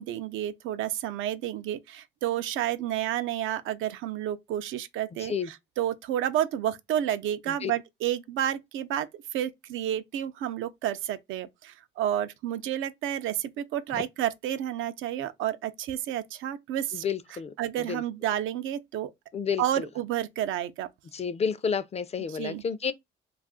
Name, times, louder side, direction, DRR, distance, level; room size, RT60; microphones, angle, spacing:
voice 1, 0.0-17.0 17.6-19.1 19.6-20.9 22.3-22.6, right 11 dB, 85° right, 0.4 m, -30 dB
voice 2, 5.2-5.5 7.5-7.7 13.9-14.0 16.9-18.0 19.3-19.9 21.1-22.9, left 6 dB, 30° left, 0.4 m, -31 dB
2.4 x 2.4 x 3.5 m
cardioid pair, 90°, 20 cm